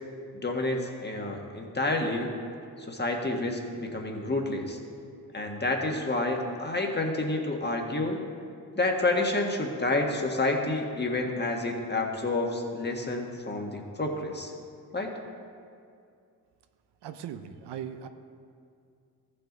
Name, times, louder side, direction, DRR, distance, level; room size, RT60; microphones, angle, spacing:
voice 1, 0.4-2.4 2.8-4.8 5.3-8.2 8.7-14.5 14.9-15.1, left 2 dB, 25° left, 1 dB, 1.5 m, -29 dB
voice 2, 17.0-18.1, right 9 dB, 85° right, 8 dB, 0.6 m, -39 dB
14.5 x 5.6 x 3.9 m, 2.3 s
cardioid pair, 55°, 40 cm